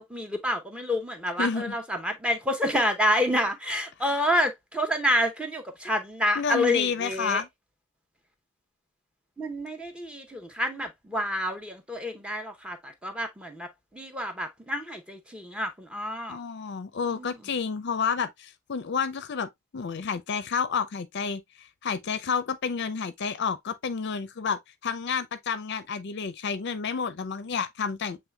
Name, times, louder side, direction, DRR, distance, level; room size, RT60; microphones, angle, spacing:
voice 1, 0.0-7.4 9.4-16.4 17.1-17.4, left 1 dB, 5° right, 0.7 m, -28 dB
voice 2, 1.4-1.7 4.1-4.2 6.4-7.5 16.3-28.2, left 6 dB, 50° left, 0.5 m, -30 dB
7.2 x 3.2 x 2.2 m
head